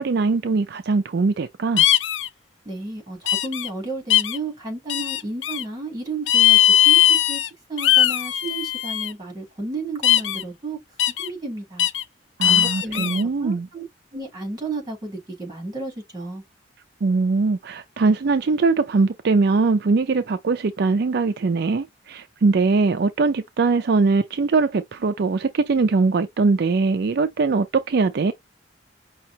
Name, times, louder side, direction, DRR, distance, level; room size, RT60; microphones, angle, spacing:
voice 1, 0.0-1.9 12.4-13.7 17.0-28.3, right 4 dB, 60° right, 0.4 m, -21 dB
sound 1, 1.8-2.3 3.3-3.7 4.1-4.4 4.9-5.6 6.3-7.5 7.8-9.1 10.0-10.4 11.0-11.3 11.8-12.0 12.4-13.2, left 12 dB, 80° left, 0.5 m, -19 dB
voice 2, 2.6-6.6 6.8-7.4 7.7-10.8 11.1-11.9 12.4-13.1 13.4-13.8 14.1-16.4, right 2 dB, 20° right, 3.4 m, -32 dB
5.5 x 2.8 x 2.8 m
head